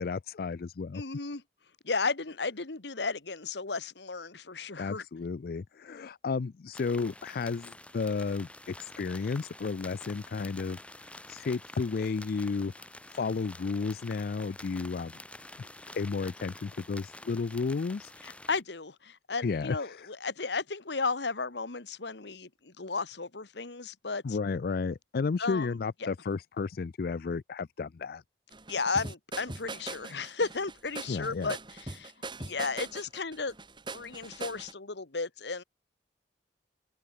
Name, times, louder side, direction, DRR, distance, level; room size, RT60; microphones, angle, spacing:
voice 1, 0.0-1.0 4.8-10.8 11.3-12.7 13.1-15.1 15.6-18.1 19.4-20.1 24.2-28.2 31.1-31.5, left 4 dB, 55° left, 0.4 m, -33 dB
voice 2, 0.9-1.4 1.8-5.0 18.2-24.2 25.4-25.7 28.7-32.1 32.4-33.5 33.9-35.6, left 4 dB, 75° left, 1.5 m, -34 dB
sound 1, 6.7-18.6, left 1 dB, 5° left, 7.6 m, -49 dB
sound 2, 28.5-34.7, right 3 dB, 25° right, 3.1 m, -41 dB
open air
head